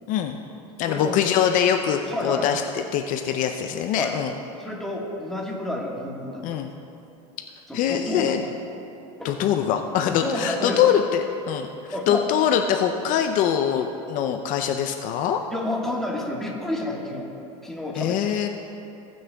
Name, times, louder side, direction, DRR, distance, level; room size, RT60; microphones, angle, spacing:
voice 1, 0.1-0.4 0.8-4.3 6.4-6.7 7.7-8.4 9.2-11.7 12.1-15.4 18.0-18.5, left 9 dB, 50° left, 5 dB, 0.5 m, -23 dB
voice 2, 0.8-1.2 2.0-2.5 4.0-4.1 4.6-6.4 7.7-8.5 9.2-9.4 10.1-10.8 11.9-12.2 15.5-17.3 17.6-18.3, left 1 dB, ahead, -3 dB, 1.5 m, -30 dB
19.0 x 6.4 x 2.3 m, 2.8 s
supercardioid pair, 105°, 17 cm